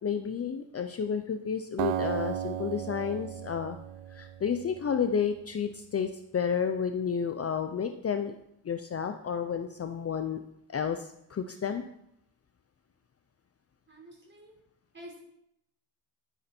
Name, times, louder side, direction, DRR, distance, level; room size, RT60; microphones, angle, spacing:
voice 1, 0.0-3.8 4.1-8.4 8.6-10.4 10.7-11.8, left 7 dB, 35° left, 7 dB, 0.7 m, -31 dB
Acoustic guitar, 1.8-5.0, right 11 dB, 70° right, 0.8 m, -35 dB
voice 2, 13.9-14.5 14.9-15.2, equal, 25° right, -1 dB, 4.8 m, -48 dB
12.0 x 9.4 x 4.5 m, 0.77 s
cardioid pair, 110°, 44 cm